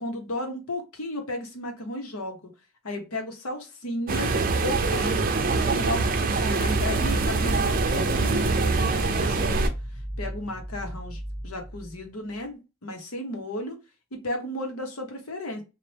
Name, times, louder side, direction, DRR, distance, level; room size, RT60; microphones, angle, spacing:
voice 1, 0.0-2.4 2.8-4.3 4.6-5.3 5.6-9.7 10.2-13.8 14.1-15.6, left 1 dB, 85° left, 3 dB, 1.2 m, -34 dB
sound 1, 4.1-9.7, right 3 dB, 40° right, 0.5 m, -24 dB
sound 2, 6.5-12.4, equal, ahead, 1.8 m, -37 dB
4.1 x 2.6 x 3.3 m, 0.28 s
head